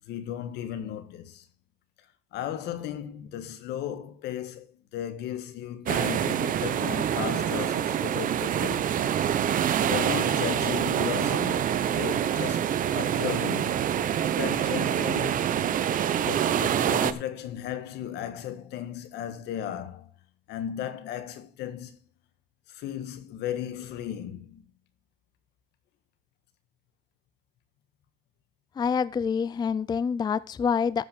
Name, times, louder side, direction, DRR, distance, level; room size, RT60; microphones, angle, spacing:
voice 1, 0.1-1.5 2.3-8.9 9.8-13.8 14.4-15.5 16.1-20.1 20.5-22.0 22.7-24.6, left 10 dB, 80° left, 1.5 m, -35 dB
sound 1, 5.9-17.1, right 9 dB, 55° right, 0.9 m, -26 dB
voice 2, 28.8-31.1, left 6 dB, 25° left, 0.4 m, -26 dB
14.0 x 5.7 x 5.3 m
cardioid pair, 110°, 17 cm